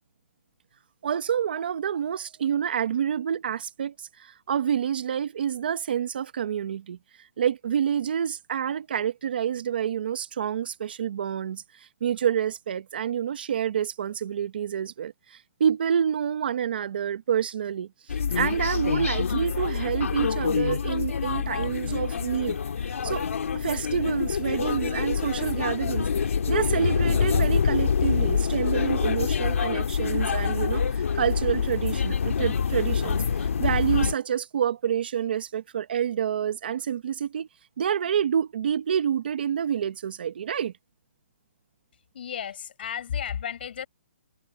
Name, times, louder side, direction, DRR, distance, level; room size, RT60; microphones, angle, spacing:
voice 1, 1.0-23.3 23.5-26.1 26.5-37.5 37.8-40.7, right 8 dB, 40° right, 0.9 m, -28 dB
sound 1, 18.1-34.1, left 6 dB, 70° left, 2.0 m, -26 dB
voice 2, 42.1-43.9, left 8 dB, 45° left, 7.3 m, -33 dB
hypercardioid pair, 175°, 8 cm